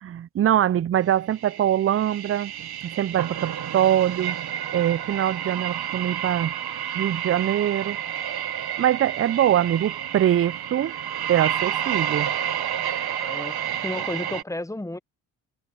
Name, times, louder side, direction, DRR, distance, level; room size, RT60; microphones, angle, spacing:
voice 1, 0.0-2.5 2.8-4.4 4.7-6.5 6.9-8.0 8.8-10.9 11.3-12.3, right 11 dB, 30° right, 0.4 m, -23 dB
sound 1, 1.3-14.4, right 10 dB, 55° right, 1.3 m, -30 dB
voice 2, 13.2-15.0, left 1 dB, 5° left, 0.8 m, -33 dB
supercardioid pair, 50°, 45 cm